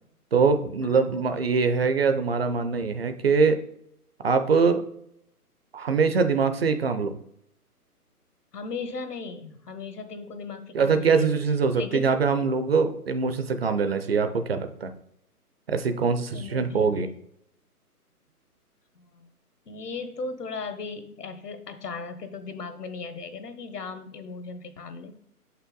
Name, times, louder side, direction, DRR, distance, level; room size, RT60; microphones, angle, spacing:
voice 1, 0.3-3.6 4.2-4.8 5.7-7.1 10.7-14.9 15.7-17.1, right 5 dB, 40° right, 9 dB, 0.6 m, -23 dB
voice 2, 0.8-1.2 8.5-11.4 11.7-12.1 16.3-17.0 19.0-19.3 19.7-25.1, left 4 dB, 80° left, 9 dB, 1.3 m, -37 dB
6.2 x 5.7 x 3.8 m, 0.72 s
hypercardioid pair, 155°, 46 cm